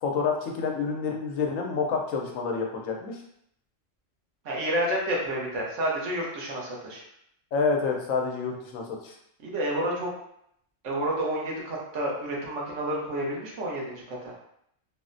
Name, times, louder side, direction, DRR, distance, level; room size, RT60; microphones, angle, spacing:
voice 1, 0.0-3.2 7.5-9.1, left 5 dB, 90° left, 1 dB, 1.0 m, -28 dB
voice 2, 4.4-7.0 9.4-10.1 10.8-14.3, right 1 dB, 70° right, -3 dB, 1.2 m, -30 dB
3.9 x 2.0 x 2.5 m, 0.73 s
omnidirectional pair, 1.3 m